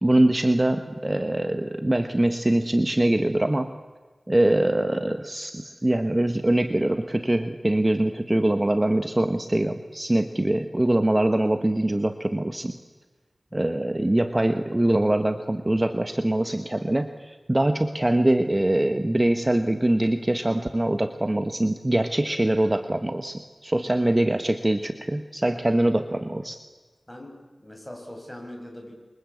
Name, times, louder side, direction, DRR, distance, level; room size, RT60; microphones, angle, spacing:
voice 1, 0.0-3.7 4.3-12.8 13.5-26.6, right 1 dB, 25° right, 8 dB, 1.3 m, -23 dB
voice 2, 27.1-28.9, left 1 dB, 10° left, 2 dB, 7.6 m, -41 dB
28.0 x 24.0 x 8.6 m, 1.3 s
wide cardioid pair, 75°, 0 cm